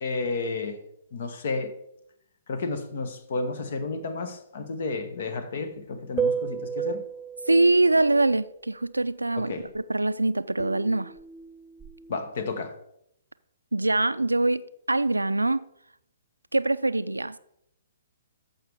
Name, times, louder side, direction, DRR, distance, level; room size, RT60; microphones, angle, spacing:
voice 1, 0.0-0.8 1.1-1.7 2.5-7.0 9.4-9.7 12.1-12.8, left 3 dB, 50° left, 1.3 m, -32 dB
sound 1, 6.2-8.4 10.6-12.1, right 7 dB, 10° right, 0.5 m, -32 dB
voice 2, 7.5-11.1 13.7-14.6 14.9-15.6 16.5-17.4, right 2 dB, 85° right, 0.4 m, -23 dB
13.5 x 5.8 x 3.5 m
figure-of-eight pair, 125°, 0 cm